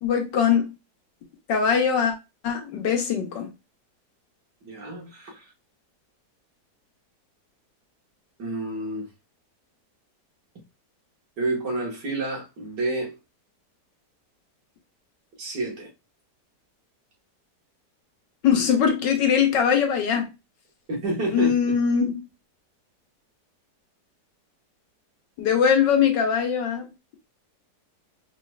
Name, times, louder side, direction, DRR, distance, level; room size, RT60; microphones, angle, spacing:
voice 1, 0.0-0.7 1.5-2.1 2.4-3.5 18.4-20.3 21.3-22.2 25.4-26.8, left 7 dB, 85° left, 1.6 m, -21 dB
voice 2, 4.6-5.5 8.4-9.1 11.4-13.2 15.4-15.9 20.9-21.7, right 2 dB, 75° right, 2.2 m, -29 dB
4.9 x 3.2 x 2.4 m
omnidirectional pair, 1.9 m